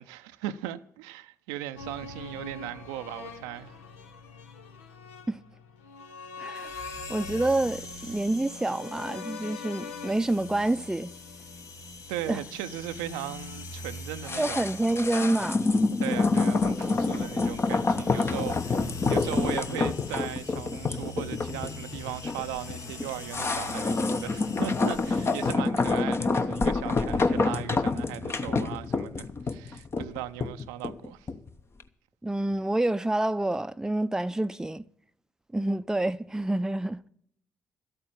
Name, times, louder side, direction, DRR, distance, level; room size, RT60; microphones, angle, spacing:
voice 1, 0.0-3.8 12.1-14.8 16.0-31.3, right 13 dB, 75° right, 0.5 m, -38 dB
sound 1, 1.8-11.9 12.2-12.3, left 4 dB, 80° left, 0.9 m, -44 dB
voice 2, 6.4-6.7 7.1-11.1 12.3-12.4 14.4-15.6 32.2-34.8 35.5-37.1, right 2 dB, 10° right, 0.6 m, -28 dB
sound 2, 6.6-25.5, left 3 dB, 55° left, 1.5 m, -43 dB
sound 3, 14.2-31.5 31.8-31.9, left 3 dB, 35° left, 1.1 m, -27 dB
13.0 x 8.8 x 7.2 m
figure-of-eight pair, 40°, 7 cm